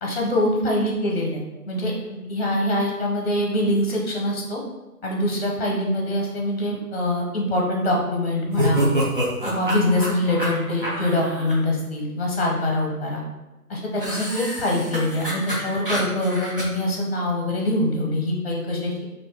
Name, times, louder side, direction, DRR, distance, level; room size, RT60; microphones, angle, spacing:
voice 1, 0.0-4.6 5.0-8.9 9.4-13.2 13.7-19.0, left 1 dB, 40° left, -1 dB, 0.8 m, -24 dB
sound 1, 8.5-11.5 14.0-16.6, right 1 dB, 35° right, 0.6 m, -27 dB
2.6 x 2.6 x 3.7 m, 1.1 s
figure-of-eight pair, 165°, 46 cm